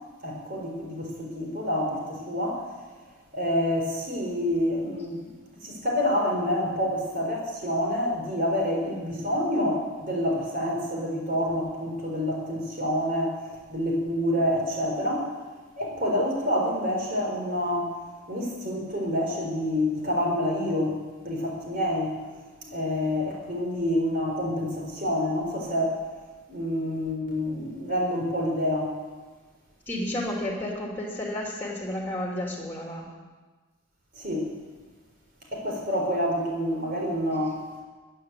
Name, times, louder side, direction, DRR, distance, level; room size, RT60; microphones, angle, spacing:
voice 1, 0.2-2.7 3.3-5.3 5.6-13.3 13.7-15.3 15.8-17.9 18.3-21.0 21.2-22.1 22.6-26.0 26.5-29.0 34.1-34.5 35.5-37.6, left 1 dB, 45° right, -1 dB, 4.3 m, -27 dB
voice 2, 29.9-33.1, left 1 dB, 10° left, -2 dB, 2.8 m, -31 dB
14.5 x 10.0 x 8.2 m, 1.3 s
head